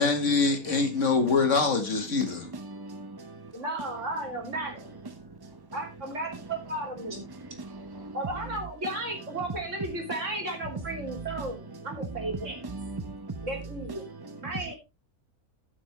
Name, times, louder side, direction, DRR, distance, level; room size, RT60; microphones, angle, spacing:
voice 1, 0.0-2.5, left 4 dB, 55° left, 2.0 m, -24 dB
voice 2, 2.5-3.5 7.6-7.8 12.7-13.5 14.2-14.3, right 2 dB, 25° right, 0.6 m, -39 dB
voice 3, 3.5-4.9 5.7-7.2 8.1-12.6 13.4-14.0 14.4-14.7, right 1 dB, 55° right, 3.6 m, -34 dB
15.0 x 6.3 x 3.3 m
omnidirectional pair, 1.5 m